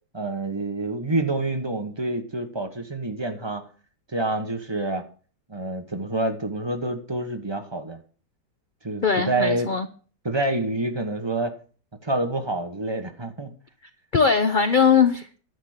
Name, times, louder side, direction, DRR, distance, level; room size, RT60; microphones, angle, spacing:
voice 1, 0.1-3.7 4.1-5.0 5.5-8.0 8.8-9.7 10.2-11.5 12.0-13.5, right 2 dB, 15° right, 1.1 m, -27 dB
voice 2, 9.0-9.9 14.1-15.3, left 6 dB, 60° left, 0.5 m, -20 dB
11.0 x 7.3 x 6.5 m
omnidirectional pair, 1.9 m